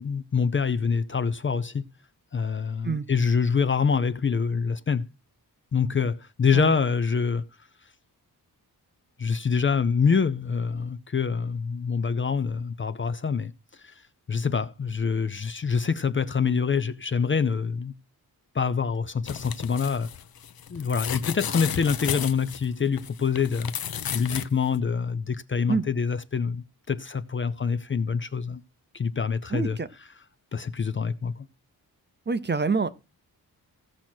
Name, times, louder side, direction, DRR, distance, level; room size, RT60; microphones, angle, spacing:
voice 1, 0.0-1.9 2.3-5.1 5.7-7.4 9.2-13.5 13.8-13.9 14.3-18.0 18.5-20.1 20.7-23.7 24.1-28.6 28.9-29.8 30.5-31.5, left 6 dB, 30° left, 0.5 m, -25 dB
sound 1, 19.2-24.5 24.8-24.9, left 9 dB, 70° left, 0.8 m, -33 dB
voice 2, 29.5-29.9 32.3-32.9, right 4 dB, 30° right, 0.7 m, -26 dB
16.0 x 6.0 x 4.4 m
wide cardioid pair, 135°, 38 cm